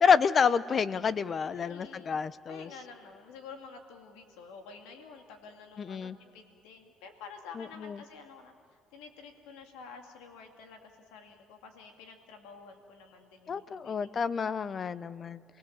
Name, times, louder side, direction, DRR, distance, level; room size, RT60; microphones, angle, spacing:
voice 1, 0.0-2.7 5.9-6.2 13.5-15.4, left 6 dB, 45° left, 16 dB, 0.8 m, -28 dB
voice 2, 1.5-2.2 2.5-14.1 15.3-15.4, left 5 dB, 90° left, 4 dB, 2.5 m, -50 dB
28.5 x 20.5 x 7.4 m, 2.3 s
supercardioid pair, 85°, 0 cm